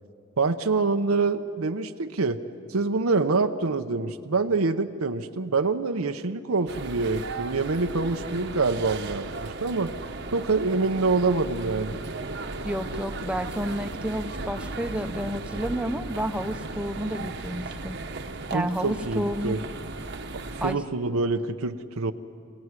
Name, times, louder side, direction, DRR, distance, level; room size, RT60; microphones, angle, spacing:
voice 1, 0.4-2.4 2.7-9.9 10.3-12.0 18.5-19.6 20.3-22.1, right 3 dB, 90° right, 7 dB, 0.8 m, -26 dB
sound 1, 6.7-20.8, right 3 dB, 55° right, 1.1 m, -36 dB
voice 2, 12.6-18.0 18.5-19.6 20.6-20.8, equal, 5° right, 7 dB, 0.8 m, -30 dB
27.5 x 17.5 x 9.7 m, 2.4 s
head